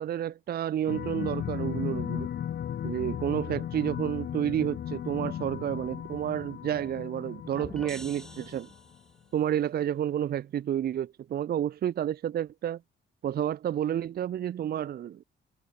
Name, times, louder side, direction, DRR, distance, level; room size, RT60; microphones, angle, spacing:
voice 1, 0.0-2.3 2.8-8.7 9.3-12.8 13.2-15.2, right 10 dB, 50° right, 0.6 m, -30 dB
sound 1, 0.9-9.0, left 10 dB, 60° left, 1.2 m, -36 dB
sound 2, 7.6-9.3, equal, ahead, 4.8 m, -45 dB
cardioid pair, 90°, 20 cm